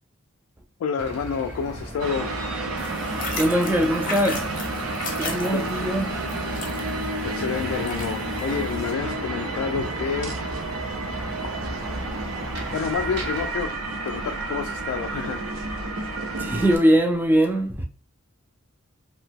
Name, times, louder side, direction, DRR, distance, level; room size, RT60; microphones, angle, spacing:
voice 1, 0.8-2.4 5.5-5.6 7.2-10.4 12.7-13.7 14.0-15.4, left 6 dB, 80° left, 0.3 m, -29 dB
sound 1, 1.0-13.5, equal, 55° right, 0.8 m, -37 dB
sound 2, 2.0-16.8, right 2 dB, 80° right, 0.5 m, -31 dB
sound 3, 2.8-8.9, left 3 dB, 40° left, 0.7 m, -37 dB
voice 2, 3.3-4.6 5.2-6.2 9.8-9.9 16.4-17.8, equal, 10° right, 0.3 m, -21 dB
2.8 x 2.2 x 3.4 m
head